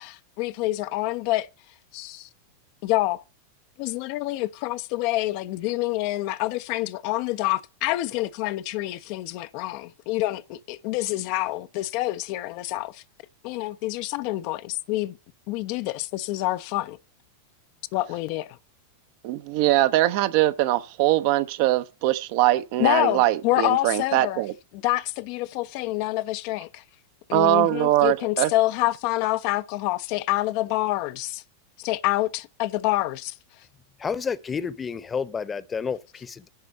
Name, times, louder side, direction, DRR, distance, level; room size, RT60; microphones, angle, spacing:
voice 1, 0.0-1.5 1.9-2.3 2.8-3.2 3.8-13.0 13.4-15.2 15.5-17.0 17.9-18.6 22.8-24.4 24.8-26.8 27.3-31.4 31.8-33.3, left 17 dB, 45° left, 0.5 m, -27 dB
voice 2, 19.2-24.5 27.3-28.5, right 15 dB, 45° right, 0.7 m, -22 dB
voice 3, 34.0-36.5, left 6 dB, 20° left, 0.9 m, -30 dB
10.5 x 4.2 x 7.6 m
figure-of-eight pair, 90°, 0 cm